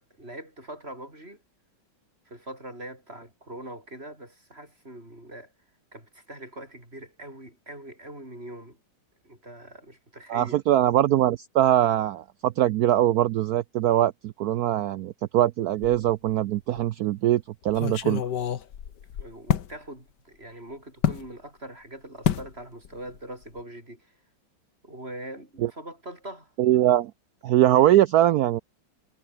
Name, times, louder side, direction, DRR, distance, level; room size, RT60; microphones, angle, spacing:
voice 1, 0.2-1.4 2.2-5.5 5.9-8.8 9.2-10.6 19.2-24.2 24.8-26.5, right 1 dB, 30° right, 8.4 m, -42 dB
voice 2, 10.3-18.2 25.6-25.7 26.6-27.1 27.4-28.6, right 13 dB, 85° right, 0.8 m, -22 dB
sound 1, 15.8-16.4 16.8-16.9 17.7-19.7 21.0-21.3 22.2-22.5 22.8-23.2 23.4-23.6, left 9 dB, 60° left, 1.8 m, -28 dB
omnidirectional pair, 2.2 m